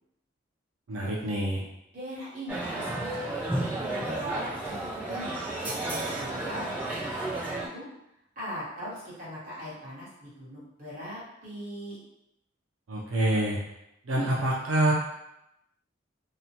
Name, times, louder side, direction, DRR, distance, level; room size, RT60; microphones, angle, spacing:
voice 1, 0.9-1.6 12.9-13.6 14.1-14.9, right 1 dB, 90° right, -4 dB, 0.5 m, -26 dB
voice 2, 1.9-5.3 5.9-7.9 8.3-12.0, equal, 45° right, -8 dB, 1.1 m, -41 dB
sound 1, 2.5-7.7, right 2 dB, 10° right, 0.5 m, -32 dB
2.8 x 2.1 x 2.8 m, 0.84 s
head